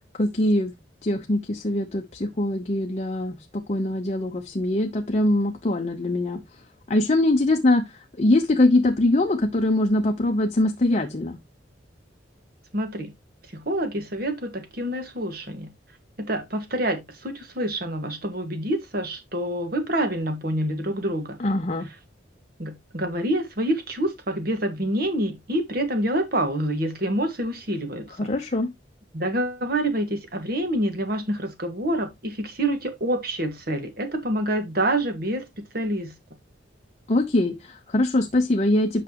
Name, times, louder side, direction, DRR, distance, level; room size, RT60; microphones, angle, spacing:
voice 1, 0.1-0.7 1.0-6.4 6.9-7.9 8.2-11.4 21.4-21.9 28.2-28.7 37.1-39.0, left 1 dB, 35° left, 0.7 m, -22 dB
voice 2, 12.7-13.1 13.5-15.7 16.2-21.4 22.6-28.3 29.1-36.1, right 1 dB, 55° right, 1.6 m, -27 dB
8.3 x 5.9 x 2.9 m
head